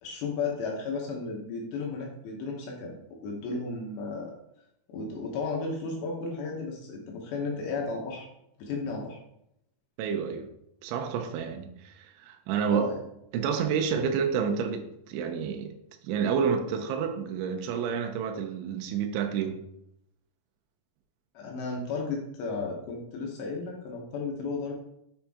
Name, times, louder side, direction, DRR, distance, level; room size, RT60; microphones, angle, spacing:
voice 1, 0.0-4.4 4.9-8.3 8.6-9.2 12.7-13.0 13.9-14.0 21.3-24.7, left 4 dB, 75° left, 2.8 m, -34 dB
voice 2, 10.0-10.5 10.8-12.9 13.3-15.7 16.0-19.6, right 7 dB, 80° right, 2.9 m, -29 dB
7.5 x 5.7 x 3.5 m
omnidirectional pair, 6.0 m